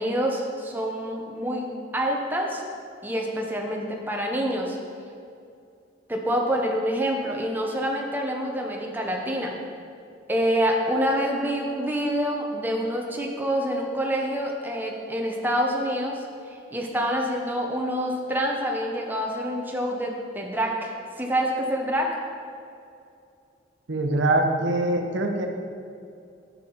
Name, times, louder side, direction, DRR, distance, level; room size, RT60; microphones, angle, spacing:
voice 1, 0.0-2.6 3.0-4.8 6.1-9.6 10.3-22.2, equal, 10° right, 0 dB, 0.7 m, -27 dB
voice 2, 23.9-25.5, right 2 dB, 75° right, 4 dB, 0.8 m, -23 dB
9.4 x 5.9 x 3.8 m, 2.5 s
head